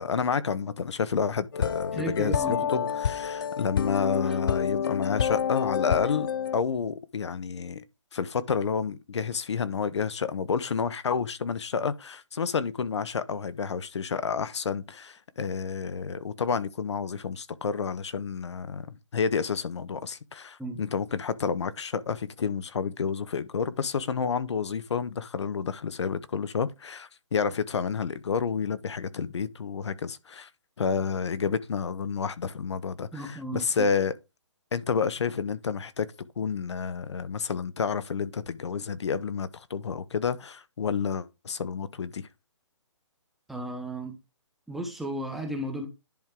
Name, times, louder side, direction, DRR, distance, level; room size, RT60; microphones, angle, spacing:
voice 1, 0.0-6.3 6.5-7.8 8.1-30.5 30.8-34.1 34.7-36.1 36.4-42.3, left 6 dB, 65° left, 0.9 m, -30 dB
sound 1, 1.5-6.6, left 8 dB, 45° left, 0.4 m, -28 dB
voice 2, 1.9-2.9 4.2-4.4 20.6-20.8 33.1-33.9 43.5-44.1 44.7-45.9, right 1 dB, ahead, 1.0 m, -34 dB
10.5 x 4.6 x 3.7 m
hypercardioid pair, 170°, 16 cm